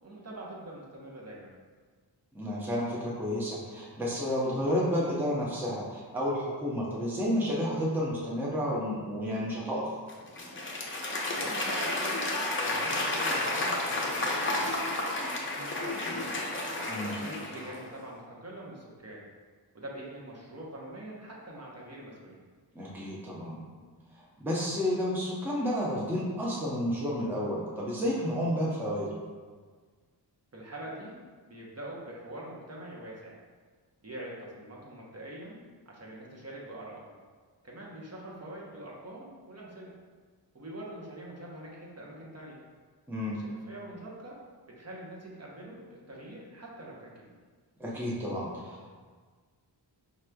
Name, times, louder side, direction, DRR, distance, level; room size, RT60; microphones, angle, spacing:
voice 1, 0.0-1.6 11.4-15.1 15.5-16.4 17.1-19.3 19.7-22.4 30.5-31.2 31.5-33.4 34.0-37.2 37.6-39.9 40.5-42.6 43.3-44.4 44.7-47.3, right 1 dB, 35° right, -4 dB, 0.9 m, -44 dB
voice 2, 2.3-9.9 16.9-17.2 22.7-23.6 24.1-29.2 43.1-43.4 47.8-48.9, equal, 5° right, -5 dB, 0.7 m, -31 dB
Applause / Crowd, 10.1-17.9, left 2 dB, 30° left, 0.7 m, -31 dB
5.0 x 3.0 x 2.3 m, 1.5 s
cardioid pair, 70°, 43 cm